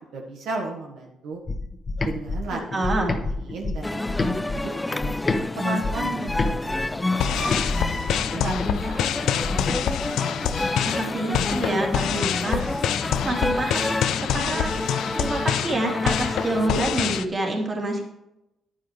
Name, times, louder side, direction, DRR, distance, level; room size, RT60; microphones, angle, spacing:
voice 1, 0.1-1.4 2.0-2.8 3.5-5.1 5.5-7.0 7.3-7.6 7.9-9.6, right 3 dB, 80° right, 0 dB, 1.6 m, -34 dB
sound 1, 1.5-5.4 5.8-9.8, left 3 dB, 35° left, 1.1 m, -29 dB
voice 2, 2.5-3.1 10.8-12.6 13.2-18.0, right 2 dB, 35° right, -1 dB, 2.9 m, -27 dB
sound 2, 3.8-17.2, left 2 dB, 10° left, 0.3 m, -29 dB
sound 3, 7.1-17.2, left 9 dB, 80° left, 0.5 m, -26 dB
10.5 x 9.6 x 3.4 m, 0.89 s
cardioid pair, 90°, 0 cm